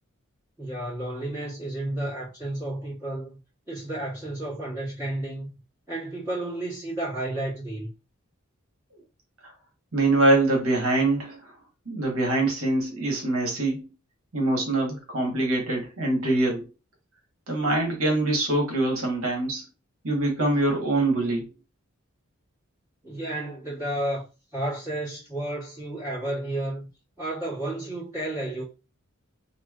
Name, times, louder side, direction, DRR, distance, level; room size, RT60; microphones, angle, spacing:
voice 1, 0.6-3.4 3.7-5.5 5.9-7.9 23.0-24.2 24.5-26.9 27.2-28.6, right 1 dB, 15° right, 1.7 m, -32 dB
voice 2, 9.9-11.5 11.9-13.8 14.3-16.7 17.5-19.6 20.0-21.5, right 2 dB, 75° right, 1.3 m, -24 dB
3.1 x 2.7 x 2.4 m
head